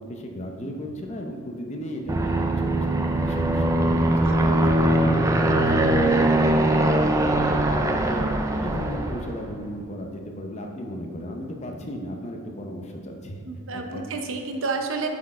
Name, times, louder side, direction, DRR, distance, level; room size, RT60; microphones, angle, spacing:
voice 1, 0.0-4.3 4.6-6.2 6.5-8.3 8.6-13.4 13.9-14.0, equal, 30° left, 2 dB, 0.6 m, -35 dB
Aircraft, 2.1-9.4, right 1 dB, 15° right, 0.3 m, -21 dB
voice 2, 4.2-4.7 13.5-15.1, right 4 dB, 60° right, 4 dB, 0.6 m, -30 dB
7.3 x 4.5 x 4.7 m, 2.2 s
head